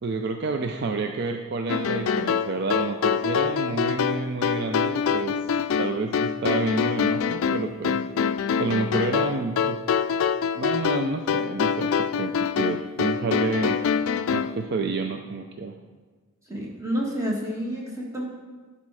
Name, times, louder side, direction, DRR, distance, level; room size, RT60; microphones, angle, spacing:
voice 1, 0.0-5.4 5.8-8.0 8.6-9.8 10.5-13.8 14.3-15.8, right 3 dB, 50° right, 5 dB, 0.4 m, -29 dB
sound 1, 1.7-14.6, left 6 dB, 75° left, 0.3 m, -25 dB
voice 2, 16.5-18.2, equal, 15° right, -3 dB, 1.6 m, -29 dB
11.5 x 4.3 x 4.8 m, 1.3 s
head